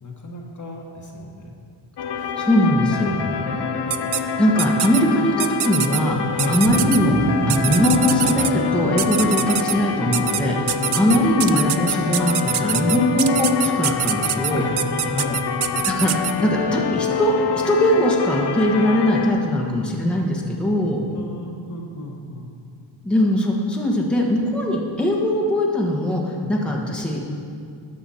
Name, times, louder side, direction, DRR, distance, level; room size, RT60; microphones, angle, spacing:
voice 1, 0.0-1.5 2.4-2.5 3.4-4.1 6.3-6.6 10.8-11.0 14.5-14.8 15.1-16.0 16.4-16.6 21.1-22.5 26.4-26.5, left 2 dB, 35° left, 0 dB, 1.3 m, -32 dB
sound 1, 2.0-19.3, left 7 dB, 55° left, 0.6 m, -27 dB
voice 2, 2.2-3.2 4.4-6.2 6.5-14.6 15.8-16.1 16.4-17.3 17.7-21.0 23.0-27.2, left 1 dB, ahead, -2 dB, 1.2 m, -20 dB
sound 2, 3.9-4.2 4.6-5.0 5.4-6.0 6.4-7.0 7.5-8.5 9.0-9.7 10.1-10.4 10.7-16.3, right 12 dB, 55° right, 0.5 m, -24 dB
Motor vehicle (road), 6.6-15.6, equal, 25° right, 2.4 m, -30 dB
12.5 x 6.2 x 4.2 m, 2.4 s
cardioid pair, 90°, 49 cm